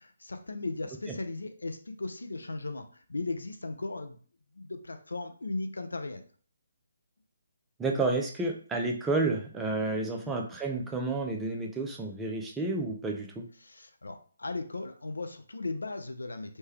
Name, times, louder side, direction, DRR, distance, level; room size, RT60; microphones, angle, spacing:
voice 1, 0.0-4.2 4.5-6.2 10.2-10.4 13.6-16.6, left 3 dB, 75° left, 7 dB, 0.4 m, -37 dB
voice 2, 7.8-13.5, right 3 dB, 10° right, 1 dB, 0.4 m, -30 dB
3.2 x 2.1 x 3.2 m, 0.43 s
figure-of-eight pair, 140°, 0 cm